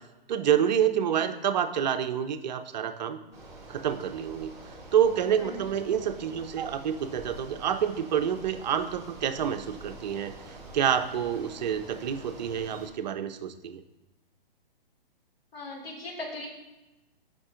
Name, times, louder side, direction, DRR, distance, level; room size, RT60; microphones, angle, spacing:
voice 1, 0.3-3.2 3.7-4.5 4.9-13.8, right 9 dB, 50° right, 9 dB, 0.5 m, -28 dB
Bicycle, 3.3-12.9, right 1 dB, 10° right, 1.7 m, -46 dB
voice 2, 15.5-16.5, left 2 dB, 75° left, -1 dB, 2.1 m, -38 dB
8.6 x 5.1 x 2.4 m, 1.0 s
hypercardioid pair, 130°, 30 cm